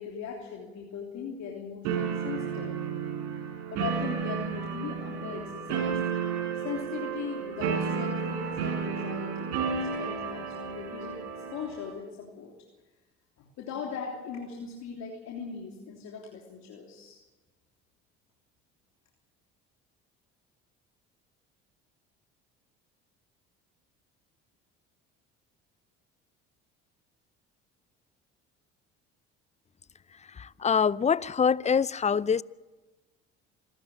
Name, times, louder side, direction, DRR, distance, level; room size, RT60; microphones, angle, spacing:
voice 1, 0.0-2.7 3.7-6.0 6.6-9.6 9.9-12.5 13.4-17.2, left 6 dB, 65° left, 3.4 m, -39 dB
sound 1, 1.8-11.9, right 6 dB, 75° right, 4.4 m, -32 dB
voice 2, 30.4-32.4, left 6 dB, 25° left, 0.6 m, -25 dB
26.5 x 13.5 x 7.8 m
hypercardioid pair, 70°, 30 cm